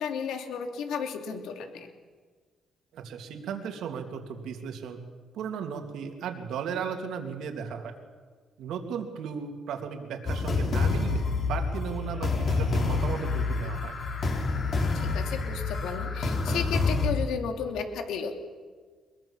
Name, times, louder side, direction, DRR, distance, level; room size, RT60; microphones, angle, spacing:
voice 1, 0.0-1.9 14.9-18.4, left 6 dB, 85° left, 5 dB, 2.7 m, -33 dB
voice 2, 2.9-5.0 5.3-8.0 8.6-14.0, right 7 dB, 80° right, 4 dB, 2.8 m, -36 dB
sound 1, 10.3-17.1, left 3 dB, 55° left, 4.5 m, -28 dB
22.5 x 22.0 x 7.2 m, 1.5 s
cardioid pair, 90°, 0 cm